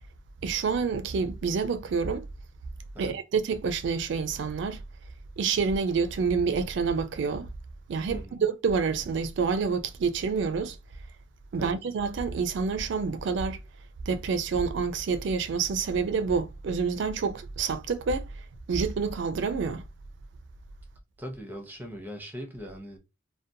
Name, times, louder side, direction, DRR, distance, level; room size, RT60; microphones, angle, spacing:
voice 1, 0.4-2.3 3.0-4.8 5.4-7.5 7.9-10.8 11.5-13.6 14.1-18.3 18.7-19.8, right 5 dB, 60° right, 0.3 m, -28 dB
voice 2, 8.1-8.4 11.6-11.8 21.2-23.0, equal, 10° right, 0.5 m, -40 dB
2.5 x 2.2 x 2.6 m
head